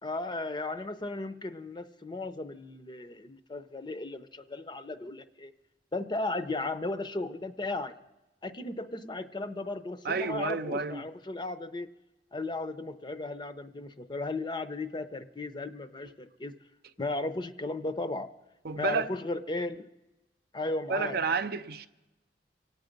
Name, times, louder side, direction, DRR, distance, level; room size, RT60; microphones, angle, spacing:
voice 1, 0.0-5.5 5.9-7.9 8.4-11.9 12.3-16.5 17.0-18.3 18.7-19.9 20.5-21.2, left 2 dB, 25° left, 0.6 m, -35 dB
voice 2, 10.0-11.0 18.6-19.1 20.9-21.9, right 4 dB, 60° right, 0.7 m, -30 dB
25.5 x 8.8 x 5.2 m
head